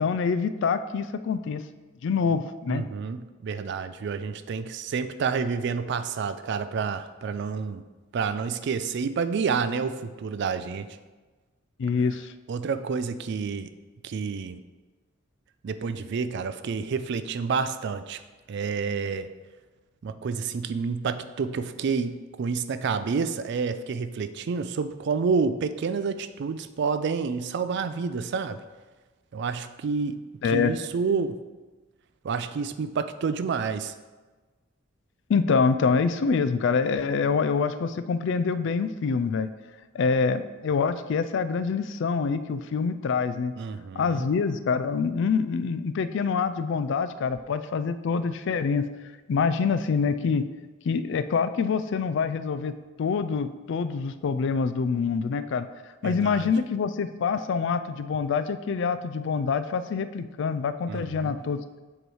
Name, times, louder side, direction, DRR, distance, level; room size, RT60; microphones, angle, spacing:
voice 1, 0.0-1.6 2.0-2.8 11.8-12.3 30.4-30.7 35.3-39.5 39.9-43.5 44.0-48.9 49.3-50.5 50.9-55.7 56.0-61.6, left 5 dB, 65° left, 12 dB, 0.3 m, -26 dB
voice 2, 2.7-7.8 8.1-10.9 12.5-13.7 14.0-14.6 15.6-18.2 18.5-19.3 20.0-28.6 29.3-30.2 30.4-31.4 32.2-33.9 43.6-44.3 56.0-56.5 60.9-61.4, right 5 dB, 60° right, 12 dB, 0.4 m, -29 dB
7.7 x 3.1 x 4.8 m, 1.3 s
head